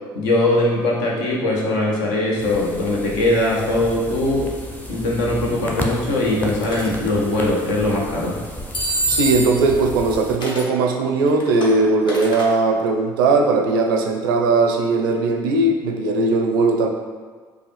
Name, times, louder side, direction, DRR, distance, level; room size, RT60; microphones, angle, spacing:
voice 1, 0.1-4.5 4.9-8.4, left 1 dB, 70° left, -2 dB, 0.8 m, -21 dB
sound 1, 2.4-10.4, equal, 15° left, 0.7 m, -33 dB
sound 2, 6.6-6.9 8.7-9.7 10.4-10.7 11.2-12.5, right 2 dB, 40° left, 1.0 m, -25 dB
voice 2, 9.1-16.9, right 3 dB, 75° right, 3 dB, 0.4 m, -18 dB
4.8 x 2.4 x 3.2 m, 1.5 s
figure-of-eight pair, 50°, 12 cm